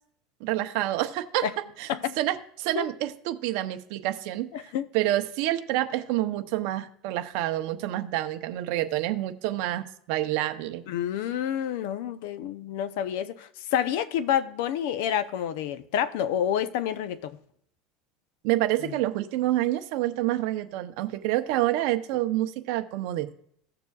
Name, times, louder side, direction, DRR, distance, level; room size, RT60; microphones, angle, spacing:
voice 1, 0.4-1.5 1.8-1.9 2.2-10.8 18.4-23.3, right 15 dB, 60° right, 0.7 m, -28 dB
voice 2, 4.5-4.9 10.9-17.4 18.8-19.0, left 9 dB, 70° left, 0.6 m, -28 dB
16.0 x 6.8 x 2.4 m
supercardioid pair, 160°, 0 cm